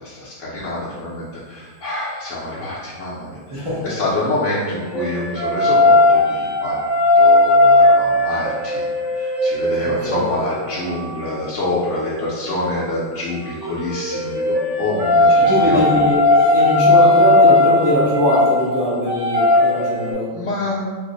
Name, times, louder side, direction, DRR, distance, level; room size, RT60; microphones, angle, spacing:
voice 1, 0.0-6.8 7.1-15.8 20.3-20.8, left 2 dB, 65° left, -8 dB, 0.7 m, -26 dB
voice 2, 3.5-3.9 9.8-10.2 15.4-20.3, left 1 dB, 40° right, -9 dB, 0.3 m, -21 dB
sound 1, 3.9-12.2 13.4-20.1, left 2 dB, 60° right, 1.0 m, -17 dB
3.3 x 2.0 x 3.8 m, 1.4 s
omnidirectional pair, 1.8 m